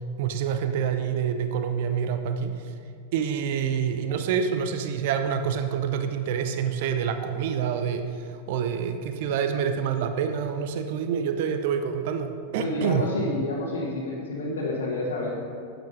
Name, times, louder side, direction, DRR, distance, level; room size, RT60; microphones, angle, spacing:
voice 1, 0.2-2.5 3.1-13.0, right 7 dB, 50° right, 7 dB, 0.7 m, -27 dB
voice 2, 12.6-15.4, left 2 dB, 65° left, -6 dB, 1.5 m, -29 dB
10.5 x 8.0 x 4.9 m, 2.2 s
figure-of-eight pair, 90°, 0 cm